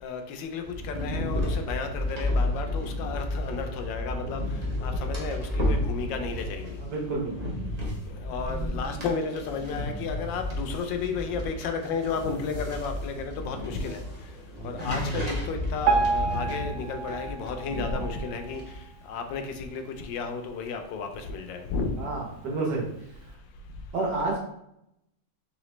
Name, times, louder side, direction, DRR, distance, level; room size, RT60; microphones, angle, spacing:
voice 1, 0.0-4.4 4.8-6.8 8.2-14.0 14.6-18.6 19.1-21.9, left 5 dB, 75° left, 5 dB, 1.2 m, -33 dB
sound 1, 0.6-18.8, left 1 dB, 40° right, 0.5 m, -32 dB
voice 2, 6.8-7.5 14.6-14.7 22.0-22.9 23.9-24.4, right 3 dB, 65° right, -2 dB, 1.5 m, -30 dB
sound 2, 8.2-9.9 10.6-11.3 15.8-16.0 16.4-16.5 16.9-17.0 17.4-17.5 17.8-18.1, equal, 20° left, 0.4 m, -40 dB
Piano, 15.8-19.0 19.5-19.6 19.9-20.0 20.7-20.8 21.4-21.5, right 4 dB, 80° right, 1.4 m, -29 dB
3.9 x 3.4 x 3.1 m, 0.79 s
omnidirectional pair, 2.1 m